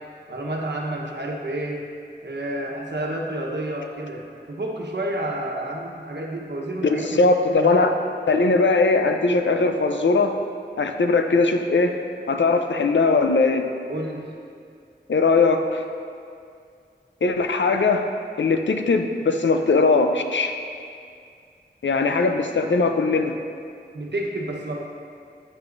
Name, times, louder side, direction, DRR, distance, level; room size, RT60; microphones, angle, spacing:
voice 1, 0.3-1.8 2.2-7.2 7.5-7.9 13.9-14.3 23.9-24.8, right 1 dB, 70° right, -1 dB, 1.1 m, -30 dB
voice 2, 6.8-7.9 8.3-10.4 10.8-12.0 12.3-13.7 15.1-15.8 17.2-18.1 18.4-20.5 21.8-23.4, left 3 dB, 85° left, 6 dB, 0.6 m, -20 dB
9.4 x 9.1 x 2.6 m, 2.3 s
wide cardioid pair, 40°, 19 cm